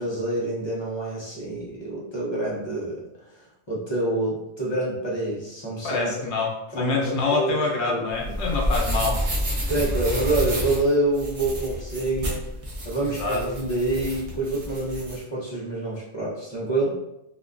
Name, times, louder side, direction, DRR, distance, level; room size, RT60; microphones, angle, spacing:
voice 1, 0.0-6.2 6.7-7.6 7.9-8.0 8.3-8.4 9.7-12.4 12.8-17.0, right 2 dB, 30° left, -6 dB, 0.6 m, -27 dB
voice 2, 5.8-9.2 13.2-13.4, left 3 dB, 75° left, -1 dB, 0.9 m, -26 dB
sound 1, 8.1-15.2, equal, 45° right, 0.5 m, -29 dB
2.6 x 2.2 x 2.4 m, 0.86 s
omnidirectional pair, 1.2 m